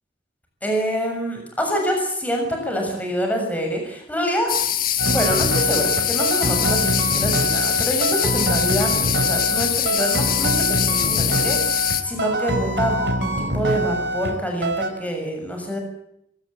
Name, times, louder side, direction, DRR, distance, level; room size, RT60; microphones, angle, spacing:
voice 1, 0.6-4.5 5.0-15.8, equal, 10° left, 2 dB, 6.9 m, -26 dB
sound 1, 4.5-12.0, left 11 dB, 55° left, 1.8 m, -23 dB
sound 2, 5.0-14.4 14.6-14.9, right 1 dB, 75° right, 4.3 m, -24 dB
sound 3, 8.2-8.8 12.0-14.8, right 2 dB, 20° right, 7.3 m, -39 dB
23.5 x 18.5 x 8.7 m, 0.76 s
head